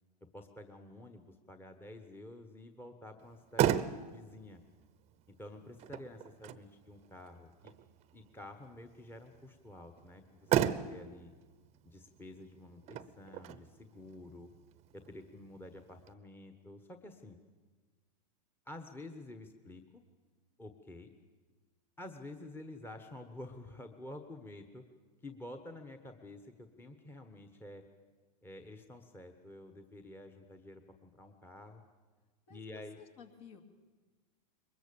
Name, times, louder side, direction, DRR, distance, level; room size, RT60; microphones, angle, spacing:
voice 1, 0.3-4.6 5.4-7.7 8.1-11.3 11.8-14.5 14.9-17.4 18.6-20.0 20.6-21.1 22.0-24.8 25.2-27.8 28.4-31.8 32.5-33.0, left 1 dB, 10° left, 6 dB, 1.2 m, -50 dB
Motor vehicle (road), 3.2-16.1, right 10 dB, 30° right, 0.8 m, -38 dB
voice 2, 32.5-33.6, left 5 dB, 55° left, 5 dB, 2.6 m, -54 dB
22.5 x 20.5 x 7.0 m, 1.4 s
hypercardioid pair, 115°, 21 cm